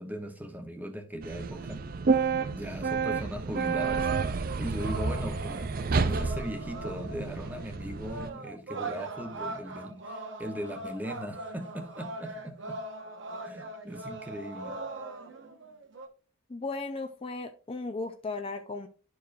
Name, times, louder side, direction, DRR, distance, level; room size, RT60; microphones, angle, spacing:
voice 1, 0.0-1.8 2.5-12.8 13.4-14.8, equal, 10° right, 0.8 m, -39 dB
sound 1, 1.2-8.3, right 5 dB, 45° right, 0.4 m, -30 dB
sound 2, 4.8-7.7 8.0-16.1, right 2 dB, 60° right, 1.0 m, -40 dB
voice 2, 16.5-18.9, left 3 dB, 25° left, 0.5 m, -36 dB
11.5 x 4.7 x 2.5 m
head